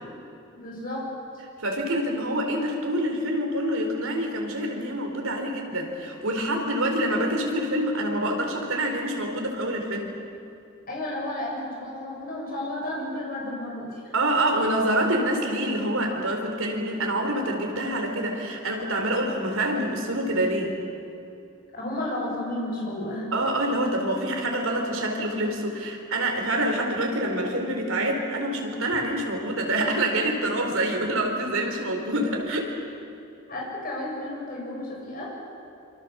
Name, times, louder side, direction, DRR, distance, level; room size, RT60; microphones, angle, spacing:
voice 1, 0.5-1.1 10.9-14.1 21.7-23.3 33.5-35.3, left 1 dB, 45° left, -3 dB, 7.7 m, -32 dB
voice 2, 1.6-10.1 14.1-20.8 23.3-32.7, right 1 dB, 85° right, 2 dB, 4.5 m, -26 dB
27.0 x 25.5 x 7.2 m, 2.7 s
head